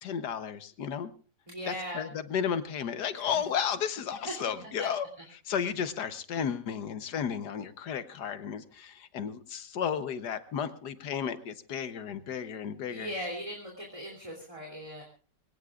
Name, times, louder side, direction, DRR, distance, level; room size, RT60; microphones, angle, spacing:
voice 1, 0.0-1.1 1.7-5.1 5.5-13.1, left 7 dB, 65° left, 11 dB, 1.6 m, -33 dB
voice 2, 1.5-2.0 3.1-3.4 4.8-4.9 12.9-15.0, equal, 15° right, 0 dB, 3.1 m, -39 dB
25.0 x 18.0 x 2.5 m, 0.37 s
omnidirectional pair, 1.9 m